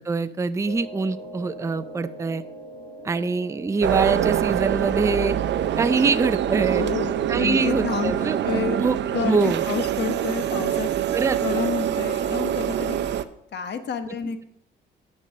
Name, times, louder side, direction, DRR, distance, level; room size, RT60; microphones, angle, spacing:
voice 1, 0.0-2.4 3.0-5.4 5.8-6.8 7.3-8.4 8.8-9.0 9.2-9.6 11.1-11.4 14.1-14.2, right 4 dB, 15° right, 12 dB, 0.4 m, -24 dB
sound 1, 0.7-6.8, right 1 dB, 35° left, 2.3 m, -42 dB
sound 2, 1.5-13.0, right 4 dB, 30° right, 1.5 m, -45 dB
sound 3, 3.8-13.2, right 10 dB, 65° right, 0.6 m, -25 dB
voice 2, 5.7-6.1 6.8-8.8 9.1-10.9 11.4-13.0 13.5-14.4, left 6 dB, 60° left, 9 dB, 1.1 m, -30 dB
10.5 x 5.4 x 6.3 m, 0.74 s
cardioid pair, 90°, 20 cm